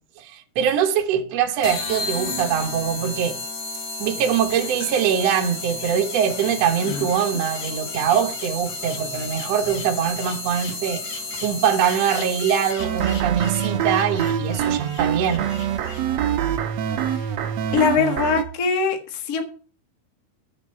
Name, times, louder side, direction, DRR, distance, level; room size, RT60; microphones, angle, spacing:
voice 1, 0.2-3.4 4.0-11.0 11.4-15.5, right 8 dB, 65° right, 1.6 m, -23 dB
sound 1, 1.6-13.0, left 3 dB, 55° left, 1.9 m, -32 dB
sound 2, 4.5-16.1, left 6 dB, 70° left, 4.0 m, -40 dB
sound 3, 12.8-18.4, right 9 dB, 85° right, 1.5 m, -25 dB
voice 2, 17.7-19.4, left 5 dB, 85° left, 0.8 m, -22 dB
9.9 x 8.0 x 5.6 m
omnidirectional pair, 4.4 m